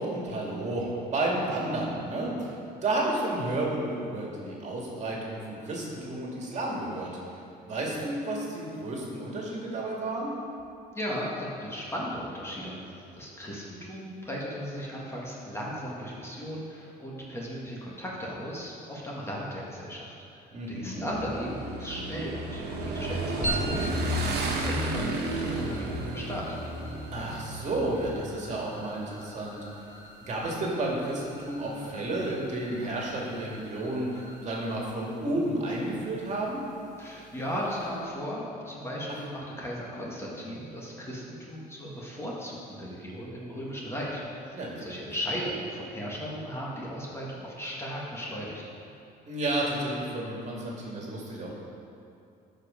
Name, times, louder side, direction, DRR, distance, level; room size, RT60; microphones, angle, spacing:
voice 1, 0.0-7.1 7.7-10.3 20.5-21.1 27.1-29.6 30.3-36.6 44.5-44.8 49.3-51.5, right 1 dB, 45° right, -3 dB, 2.2 m, -31 dB
voice 2, 10.9-12.8 13.1-26.6 37.0-48.6, equal, 15° left, -5 dB, 2.0 m, -36 dB
Motorcycle / Engine, 21.1-28.1, right 1 dB, 70° right, 1.5 m, -32 dB
sound 1, 23.4-38.1, right 1 dB, 45° left, 2.3 m, -43 dB
13.0 x 5.3 x 5.2 m, 2.7 s
cardioid pair, 110°, 17 cm